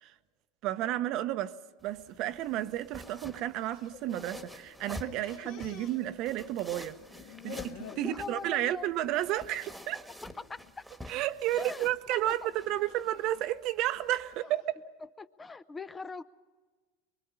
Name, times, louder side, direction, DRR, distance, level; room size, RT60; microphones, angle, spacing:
voice 1, 0.6-7.0 7.4-10.0 11.1-14.6, right 14 dB, 55° right, 0.9 m, -32 dB
sound 1, 1.8-14.4, equal, ahead, 1.6 m, -49 dB
sound 2, 3.5-4.5 4.8-6.7 7.0-8.1 8.6-9.0 9.3-9.5 10.3-10.7 11.2-11.6 12.5-14.7, left 8 dB, 70° left, 3.0 m, -50 dB
voice 2, 8.0-8.9 10.4-10.6 11.6-12.5 15.2-16.2, left 4 dB, 15° left, 0.7 m, -41 dB
25.0 x 22.5 x 5.6 m
supercardioid pair, 120°, 0 cm